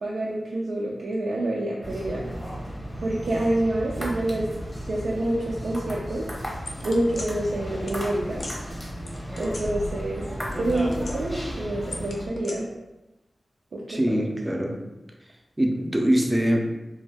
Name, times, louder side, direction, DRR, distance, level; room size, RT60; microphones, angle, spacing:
voice 1, 0.0-2.3 3.0-4.5 4.9-6.3 6.8-8.4 9.3-10.2 10.6-12.7 13.7-14.3, right 1 dB, 80° right, -5 dB, 0.4 m, -27 dB
sound 1, 1.8-12.3, equal, 5° left, 0.8 m, -34 dB
sound 2, 6.7-7.3 7.9-8.0 8.3-8.6 9.1-10.2 10.4-11.4 11.9-12.5, left 2 dB, 60° left, 0.5 m, -37 dB
voice 2, 13.9-14.7 15.6-16.7, equal, 15° right, 1 dB, 0.4 m, -23 dB
2.6 x 2.2 x 3.3 m, 1.0 s
wide cardioid pair, 85°, 0 cm